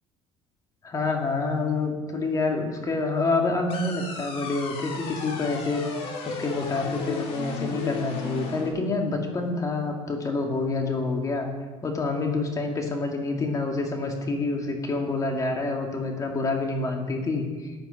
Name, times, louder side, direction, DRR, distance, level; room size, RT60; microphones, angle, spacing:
voice 1, 0.8-11.5 11.8-17.7, left 3 dB, 30° left, 2 dB, 2.2 m, -27 dB
sound 1, 3.7-8.7, left 4 dB, 55° left, 2.7 m, -35 dB
14.0 x 8.8 x 5.4 m, 1.4 s
cardioid pair, 135°, 12 cm